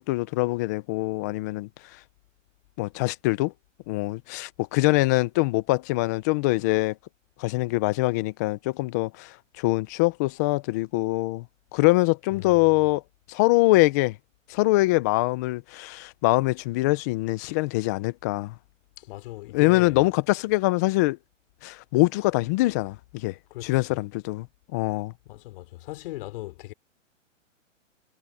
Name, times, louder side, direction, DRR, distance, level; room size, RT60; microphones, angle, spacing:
voice 1, 0.0-1.7 2.8-3.5 3.9-7.0 7.4-11.5 11.7-13.0 13.3-14.2 14.5-18.5 19.5-21.2 21.6-23.4 23.6-24.5 24.7-25.1, left 21 dB, 15° left, 0.4 m, -24 dB
voice 2, 12.3-12.7 19.0-20.0 23.5-24.0 25.3-26.7, left 18 dB, 45° left, 3.8 m, -39 dB
hypercardioid pair, 140°, 39 cm